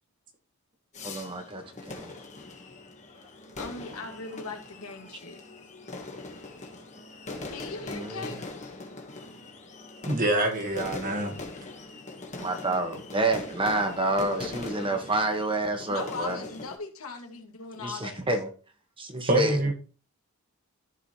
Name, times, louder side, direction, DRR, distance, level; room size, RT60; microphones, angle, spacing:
sound 1, 0.9-16.8, left 2 dB, 35° left, 1.5 m, -41 dB
voice 1, 1.0-2.1 7.3-7.5 7.9-8.3 12.4-16.4 17.8-18.5 19.0-19.7, right 2 dB, 25° right, 1.4 m, -29 dB
voice 2, 3.6-5.5 7.5-8.5 11.3-11.9 15.9-18.4, left 4 dB, 80° left, 1.9 m, -40 dB
voice 3, 10.1-11.4 19.3-19.7, right 2 dB, 40° right, 1.8 m, -25 dB
14.0 x 4.9 x 3.0 m
head